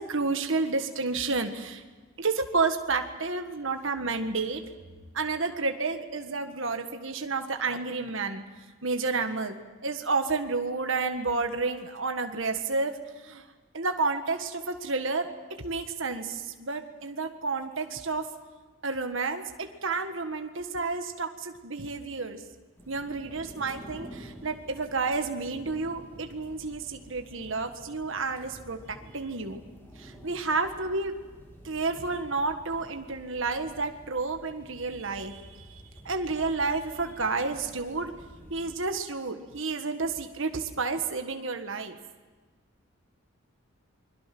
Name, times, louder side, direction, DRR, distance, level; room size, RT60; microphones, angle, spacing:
voice 1, 0.0-1.8 2.2-4.6 5.1-8.4 8.8-9.5 9.8-13.0 13.2-13.4 13.7-15.3 15.6-18.3 18.8-19.4 19.8-22.4 22.9-29.6 30.0-31.1 31.6-38.1 38.5-42.0, right 3 dB, 65° right, 6 dB, 1.6 m, -30 dB
sound 1, 22.8-38.8, equal, 10° left, 3.5 m, -50 dB
28.5 x 22.0 x 6.1 m, 1.3 s
head